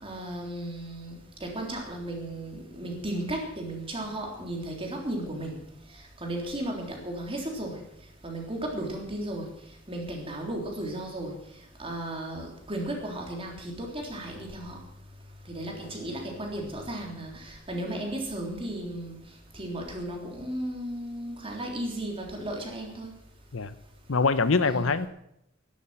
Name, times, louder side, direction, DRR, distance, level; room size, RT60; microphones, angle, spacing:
voice 1, 0.0-5.6 6.2-7.8 8.2-9.5 9.9-11.3 11.8-14.8 15.5-19.2 19.5-23.1 24.6-24.9, right 1 dB, 30° right, 0 dB, 3.6 m, -35 dB
voice 2, 24.1-25.1, left 4 dB, 80° left, 14 dB, 0.8 m, -24 dB
12.0 x 11.5 x 7.7 m, 0.77 s
head